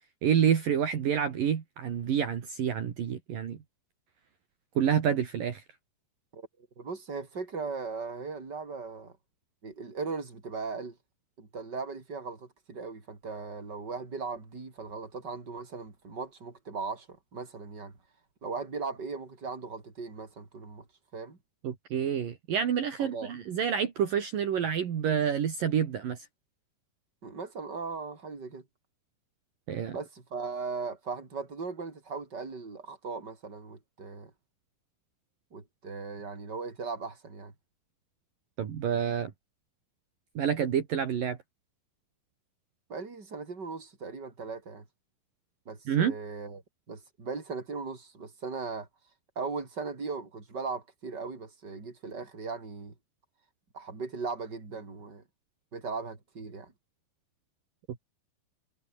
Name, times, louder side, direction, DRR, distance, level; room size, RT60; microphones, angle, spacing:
voice 1, 0.2-3.6 4.8-5.6 21.6-26.3 29.7-30.0 38.6-39.3 40.4-41.4 45.9-46.1, right 8 dB, 60° right, 3.8 m, -28 dB
voice 2, 6.8-9.2 9.6-11.0 11.4-17.9 18.4-20.8 21.1-21.4 23.0-23.3 27.2-28.6 29.9-34.3 35.5-37.5 42.9-44.8 45.6-46.6 46.9-48.9 49.3-52.9 53.7-55.2 55.7-56.7, right 4 dB, 25° right, 5.1 m, -38 dB
omnidirectional pair, 4.7 m